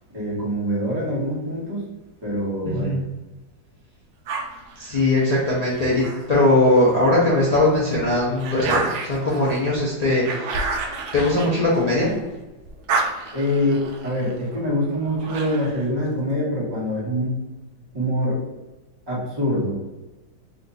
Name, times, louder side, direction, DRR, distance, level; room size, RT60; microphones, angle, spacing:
voice 1, 0.1-1.9 2.2-3.0 13.3-17.4 17.9-18.4 19.1-19.8, equal, 15° right, -7 dB, 1.2 m, -24 dB
voice 2, 2.6-3.0 4.8-10.5 11.1-12.1, left 2 dB, 35° left, -8 dB, 0.6 m, -20 dB
sound 1, 4.3-7.0 7.5-12.3 12.6-15.9, right 4 dB, 70° right, 1.1 m, -31 dB
3.6 x 2.6 x 4.0 m, 1.1 s
omnidirectional pair, 2.1 m